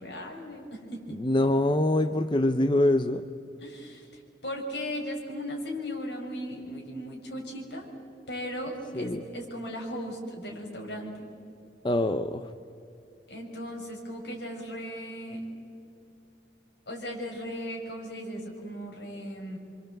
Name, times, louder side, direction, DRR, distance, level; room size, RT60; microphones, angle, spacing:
voice 1, 0.0-1.2 3.6-7.9 8.3-11.3 13.3-15.5 16.9-19.6, equal, 70° left, 0 dB, 6.3 m, -37 dB
voice 2, 1.2-3.2 8.9-9.2 11.8-12.5, left 1 dB, 25° left, 9 dB, 0.6 m, -24 dB
28.5 x 24.5 x 8.0 m, 2.5 s
head